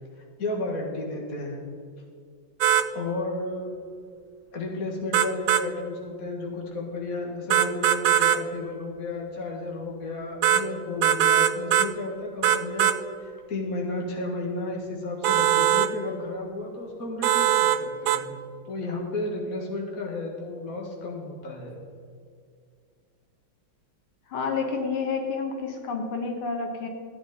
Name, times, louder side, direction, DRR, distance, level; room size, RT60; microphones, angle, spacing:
voice 1, 0.4-1.7 2.9-3.7 4.5-18.3 18.7-21.8, left 2 dB, 45° left, 0 dB, 2.0 m, -33 dB
sound 1, 2.6-2.9 5.1-5.7 7.5-8.4 10.4-10.6 11.0-11.9 12.4-13.0 15.2-15.9 17.2-17.8 18.1-18.2, right 11 dB, 75° right, 1.2 m, -21 dB
voice 2, 24.3-26.9, left 4 dB, 90° left, 3 dB, 2.1 m, -29 dB
14.5 x 9.1 x 4.2 m, 2.2 s
omnidirectional pair, 2.3 m